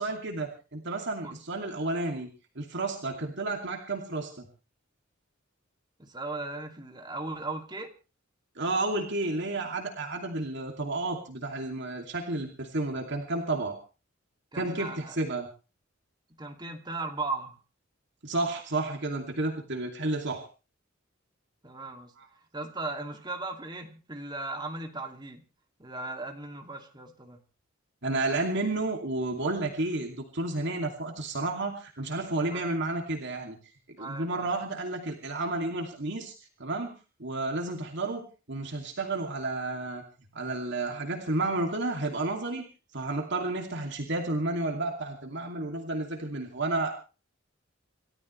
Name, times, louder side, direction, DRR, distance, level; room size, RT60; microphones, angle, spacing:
voice 1, 0.0-2.3 2.6-4.5 8.6-13.8 14.5-15.5 18.2-20.4 22.2-22.3 28.0-33.6 34.0-36.3 36.6-40.0 40.3-42.7 42.9-46.9, right 2 dB, 60° right, 2 dB, 2.7 m, -31 dB
voice 2, 6.0-7.9 14.5-15.2 16.4-17.6 21.6-22.1 22.5-25.4 25.8-27.4 32.5-32.7 34.0-34.5, right 3 dB, 20° right, 3 dB, 2.6 m, -37 dB
28.0 x 13.5 x 3.3 m, 0.35 s
head